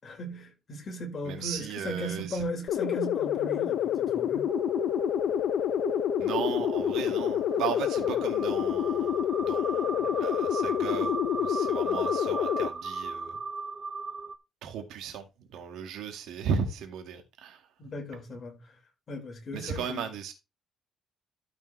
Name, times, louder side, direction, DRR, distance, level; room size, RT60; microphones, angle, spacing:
voice 1, 0.0-4.5 17.8-18.7 19.1-20.1, equal, 40° left, 5.2 m, -37 dB
voice 2, 1.2-2.4 6.2-13.4 14.6-17.7 19.5-20.3, right 7 dB, 85° right, 2.1 m, -36 dB
sound 1, 2.7-12.7, left 10 dB, 75° left, 0.6 m, -28 dB
sound 2, 4.5-14.4, right 4 dB, 25° right, 0.6 m, -37 dB
13.5 x 5.2 x 3.3 m
cardioid pair, 120°, 0 cm